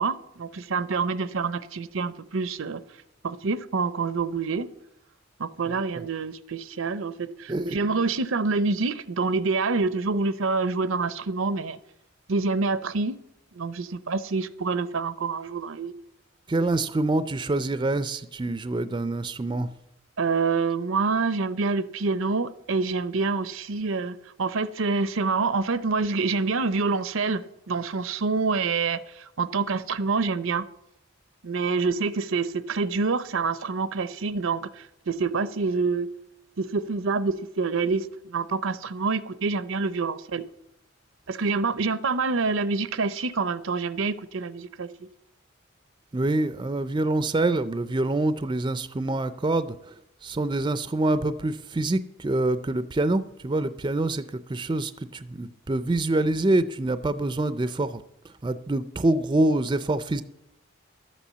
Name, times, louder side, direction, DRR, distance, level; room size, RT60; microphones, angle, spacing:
voice 1, 0.0-2.8 3.2-4.7 5.4-11.8 12.3-13.2 13.5-15.9 20.2-27.4 27.7-30.7 31.4-36.1 36.6-40.4 41.3-44.9, right 4 dB, 75° right, 0.6 m, -27 dB
voice 2, 16.5-19.7 46.1-49.9 50.2-60.2, right 2 dB, 25° right, 0.4 m, -26 dB
12.0 x 8.4 x 7.4 m
head